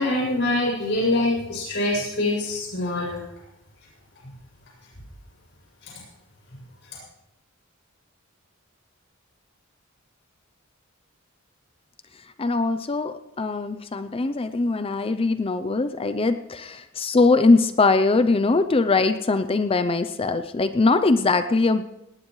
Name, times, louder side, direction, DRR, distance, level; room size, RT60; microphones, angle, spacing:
voice 1, 0.0-3.2 5.8-5.9, left 2 dB, 60° left, -4 dB, 7.1 m, -24 dB
voice 2, 12.4-21.8, left 3 dB, 25° left, 10 dB, 0.5 m, -21 dB
19.0 x 18.5 x 3.2 m, 0.90 s
head